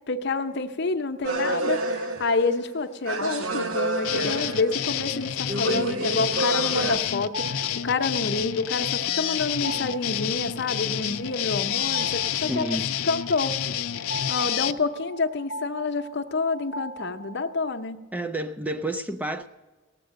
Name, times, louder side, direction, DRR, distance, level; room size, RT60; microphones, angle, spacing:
voice 1, 0.1-12.7 13.0-13.6 14.3-18.0, left 3 dB, 50° left, 0.8 m, -28 dB
sound 1, 1.2-2.7 3.1-5.1 5.5-7.0, right 2 dB, 65° right, 0.9 m, -28 dB
sound 2, 4.0-14.7, left 11 dB, 80° left, 0.5 m, -29 dB
sound 3, 7.0-17.7, right 1 dB, 35° right, 1.2 m, -41 dB
voice 2, 12.5-12.9 18.1-19.5, right 1 dB, 5° right, 0.3 m, -30 dB
18.0 x 7.7 x 6.4 m
head